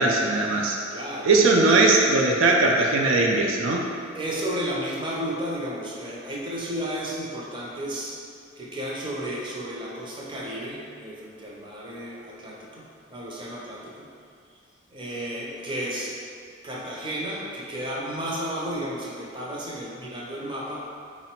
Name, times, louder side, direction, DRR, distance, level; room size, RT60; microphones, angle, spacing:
voice 1, 0.0-0.8 1.2-3.9, right 2 dB, 85° right, 0 dB, 0.4 m, -20 dB
voice 2, 0.9-1.5 4.1-8.2 8.6-14.1 14.9-16.2 16.6-20.9, equal, 25° right, -5 dB, 0.5 m, -33 dB
3.7 x 2.0 x 4.3 m, 2.3 s
head